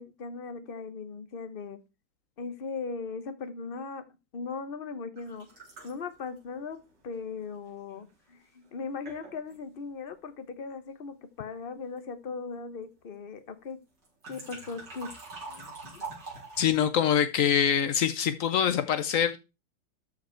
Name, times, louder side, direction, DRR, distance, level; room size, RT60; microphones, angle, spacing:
voice 1, 0.0-1.8 2.4-4.0 4.3-5.5 5.8-6.8 7.0-13.8 14.3-15.1 15.5-16.0 18.7-18.8, left 4 dB, 40° left, 0.8 m, -38 dB
sound 1, 5.2-8.0 8.7-8.8 9.1-9.6 14.0-16.7, right 3 dB, 55° right, 4.8 m, -45 dB
voice 2, 16.6-19.4, left 9 dB, 90° left, 0.7 m, -24 dB
12.5 x 5.1 x 4.5 m
omnidirectional pair, 2.2 m